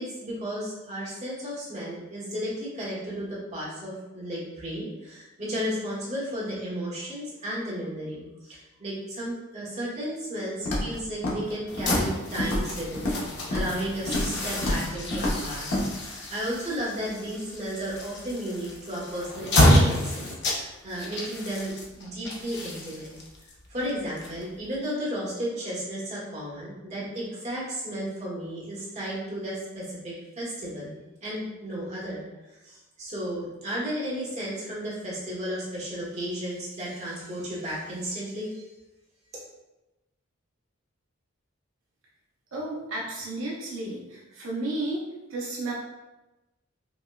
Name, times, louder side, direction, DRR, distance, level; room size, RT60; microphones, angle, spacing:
voice 1, 0.0-20.3 20.5-23.1 23.7-32.2 32.5-38.6, equal, 35° right, -6 dB, 1.1 m, -34 dB
Walk footsteps, 10.7-11.0 11.2-11.5 11.8-12.1 12.4-13.2 13.5-13.8 14.1-14.4 14.6-14.8 15.1-15.4 15.7-15.8, left 1 dB, 75° left, 0.9 m, -27 dB
sound 1, 11.7-24.8, left 1 dB, 55° left, 0.6 m, -28 dB
voice 2, 42.5-45.0 45.3-45.7, right 2 dB, 75° right, -4 dB, 0.7 m, -32 dB
5.2 x 2.2 x 2.3 m, 1.0 s
head